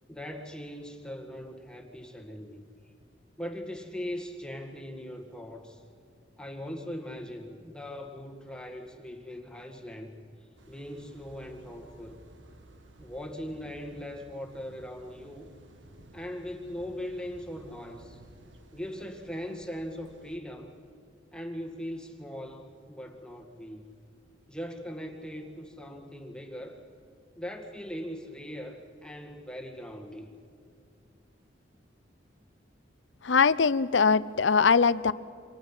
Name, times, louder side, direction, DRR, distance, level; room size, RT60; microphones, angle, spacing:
voice 1, 0.1-2.6 3.4-5.8 6.4-10.2 10.7-12.3 13.0-15.5 16.1-18.2 18.7-20.7 21.3-23.9 24.5-26.8 27.4-30.3, equal, 5° left, 2 dB, 1.8 m, -40 dB
sound 1, 10.6-20.4, right 1 dB, 75° right, 1.8 m, -54 dB
voice 2, 33.2-35.1, left 5 dB, 70° left, 17 dB, 0.6 m, -22 dB
28.5 x 26.0 x 5.7 m, 2.4 s
head